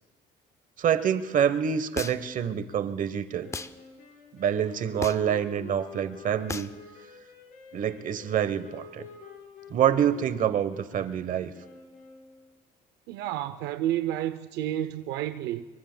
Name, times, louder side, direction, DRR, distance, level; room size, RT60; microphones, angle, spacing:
voice 1, 0.8-3.5 4.3-6.7 7.7-9.1 9.7-11.5, right 9 dB, 50° right, 0.9 m, -26 dB
sound 1, 2.0-2.4 3.5-3.7 5.0-5.4 6.5-6.8, left 4 dB, 15° left, 0.5 m, -35 dB
sound 2, 3.4-12.6, left 6 dB, 60° left, 4.3 m, -48 dB
voice 2, 13.1-15.6, right 12 dB, 85° right, 0.5 m, -30 dB
25.0 x 22.5 x 2.2 m
cardioid pair, 110°, 17 cm